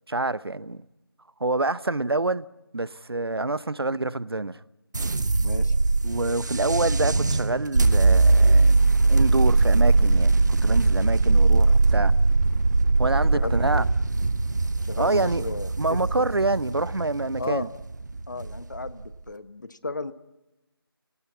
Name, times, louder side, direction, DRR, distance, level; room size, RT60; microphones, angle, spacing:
voice 1, 0.1-0.8 1.4-2.4 2.7-4.6 6.0-8.8 9.1-12.1 13.0-13.8 15.0-15.5 15.8-17.7, right 2 dB, 80° right, 0.8 m, -26 dB
sound 1, 4.9-19.1, right 3 dB, 50° right, 0.9 m, -21 dB
voice 2, 5.4-5.7 13.3-13.9 14.8-16.2 17.4-17.7 18.3-20.1, left 3 dB, 50° left, 1.0 m, -34 dB
27.5 x 18.0 x 9.5 m
figure-of-eight pair, 165°, 13 cm